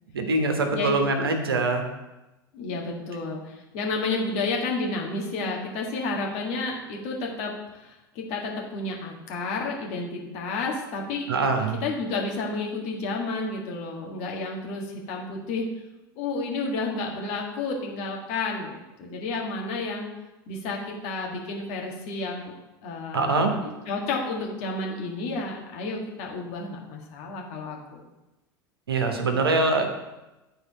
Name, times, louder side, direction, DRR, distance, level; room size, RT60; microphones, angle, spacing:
voice 1, 0.1-1.9 11.3-11.8 23.1-23.5 28.9-30.0, right 3 dB, 80° right, 4 dB, 1.1 m, -23 dB
voice 2, 2.5-11.3 11.8-15.7 16.2-20.1 20.5-22.5 22.8-28.1, left 3 dB, 55° left, -1 dB, 1.8 m, -31 dB
9.9 x 4.3 x 4.2 m, 1.0 s
figure-of-eight pair, 75°, 12 cm